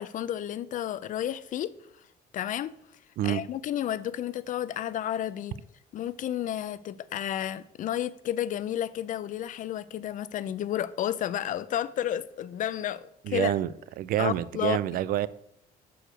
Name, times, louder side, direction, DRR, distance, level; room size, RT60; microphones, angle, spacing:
voice 1, 0.0-1.7 2.3-2.7 3.2-5.6 5.9-13.5 14.2-14.8, left 11 dB, 50° left, 0.4 m, -31 dB
voice 2, 13.3-13.7 14.0-15.3, right 12 dB, 60° right, 0.4 m, -27 dB
6.4 x 4.6 x 6.3 m
cardioid pair, 110°, 17 cm